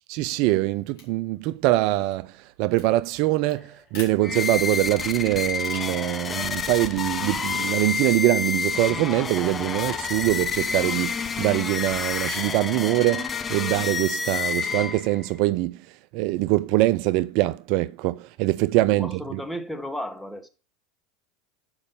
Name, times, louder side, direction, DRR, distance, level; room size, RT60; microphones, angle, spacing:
voice 1, 0.1-15.8 16.1-19.4, right 17 dB, 60° right, 0.3 m, -23 dB
Revolver Reload, 0.9-8.8, left 3 dB, 70° left, 3.4 m, -50 dB
sound 1, 4.2-15.3, left 5 dB, 25° left, 0.7 m, -29 dB
voice 2, 18.9-20.5, equal, ahead, 1.1 m, -34 dB
7.2 x 5.2 x 5.2 m
hypercardioid pair, 85°, 0 cm